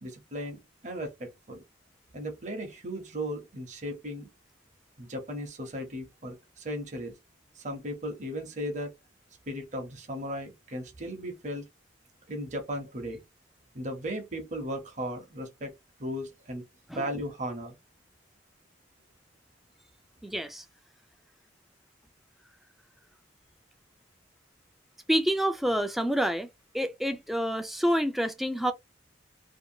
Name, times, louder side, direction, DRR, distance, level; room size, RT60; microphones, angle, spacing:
voice 1, 0.0-1.6 2.1-4.3 5.0-7.1 7.6-8.9 9.5-11.6 12.3-13.2 13.7-15.7 16.0-16.6 17.0-17.7, equal, 40° right, 0.7 m, -36 dB
voice 2, 20.2-20.6 25.1-26.5 26.7-28.7, equal, ahead, 0.3 m, -27 dB
2.6 x 2.3 x 2.7 m
head